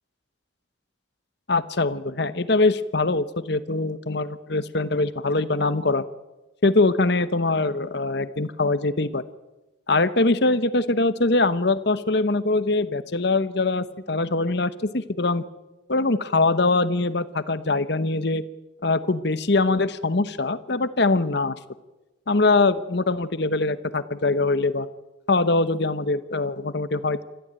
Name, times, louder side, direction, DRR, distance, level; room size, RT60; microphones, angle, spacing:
voice 1, 1.5-6.0 6.6-9.2 9.9-15.4 15.9-18.4 18.8-21.6 22.3-24.9 25.3-27.2, left 3 dB, 55° left, 14 dB, 1.0 m, -23 dB
27.0 x 14.0 x 8.8 m, 1.1 s
head